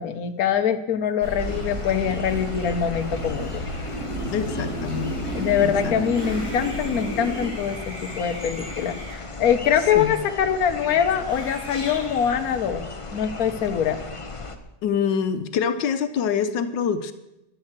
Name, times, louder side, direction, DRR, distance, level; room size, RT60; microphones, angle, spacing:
voice 1, 0.0-3.5 5.3-9.0 9.4-12.8 13.1-14.0, left 8 dB, 60° left, 7 dB, 1.4 m, -23 dB
sound 1, 1.2-7.5, right 1 dB, 75° right, 4.7 m, -31 dB
sound 2, 1.4-14.6, left 3 dB, 25° left, 0.7 m, -36 dB
voice 2, 4.3-5.2 5.6-6.0 10.0-10.1 14.8-17.1, left 7 dB, 85° left, 10 dB, 1.5 m, -25 dB
Screaming, 6.1-10.5 11.2-12.9, equal, 45° right, 4.7 m, -43 dB
12.5 x 11.0 x 7.4 m, 0.91 s
omnidirectional pair, 1.9 m